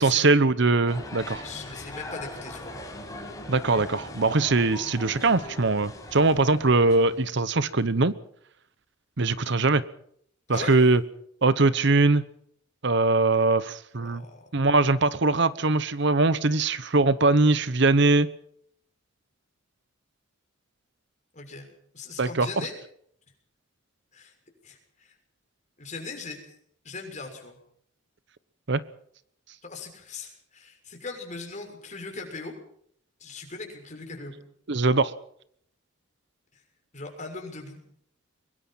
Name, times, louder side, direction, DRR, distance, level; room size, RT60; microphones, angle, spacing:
voice 1, 0.0-1.4 3.5-8.1 9.2-9.8 10.5-11.0 11.4-12.2 12.8-14.2 14.5-18.3 22.2-22.5 28.7-28.8 34.7-35.1, right 3 dB, 60° right, 15 dB, 1.0 m, -21 dB
sound 1, 0.9-7.2, left 1 dB, 15° left, 6.1 m, -40 dB
voice 2, 1.4-2.8 10.5-10.8 13.9-14.5 21.3-22.7 24.1-24.3 24.6-25.1 25.8-26.6 26.8-27.6 29.6-32.5 33.2-34.4 36.5-36.6 36.9-37.8, left 3 dB, 35° left, 3 dB, 6.4 m, -39 dB
23.5 x 21.5 x 5.8 m, 0.66 s
head